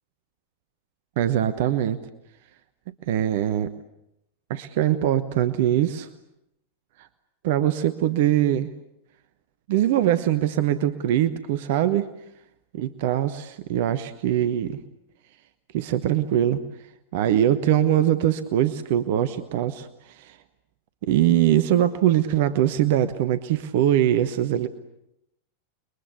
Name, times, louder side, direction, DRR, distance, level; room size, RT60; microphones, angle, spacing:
voice 1, 1.2-2.0 3.0-3.8 4.5-6.1 7.0-7.1 7.4-8.7 9.7-12.1 12.8-14.8 15.7-16.6 17.1-20.4 21.0-24.7, right 11 dB, 50° right, 12 dB, 1.1 m, -22 dB
29.5 x 22.0 x 8.4 m, 0.83 s
figure-of-eight pair, 90°, 0 cm